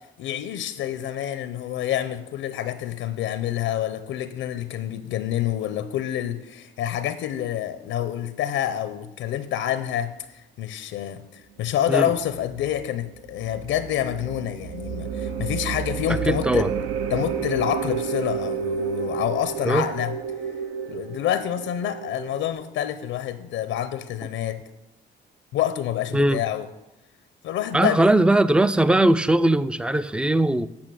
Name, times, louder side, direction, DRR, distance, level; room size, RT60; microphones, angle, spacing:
voice 1, 0.2-16.7 17.1-20.1 20.9-24.6 25.5-26.7 27.4-28.1, left 11 dB, 85° left, 12 dB, 0.6 m, -27 dB
sound 1, 12.2-22.5, right 7 dB, 85° right, 0.7 m, -31 dB
voice 2, 16.3-16.7 19.6-19.8 26.1-26.4 27.7-30.7, right 1 dB, 5° right, 16 dB, 0.3 m, -19 dB
8.6 x 5.8 x 6.2 m, 0.92 s
cardioid pair, 90°, 20 cm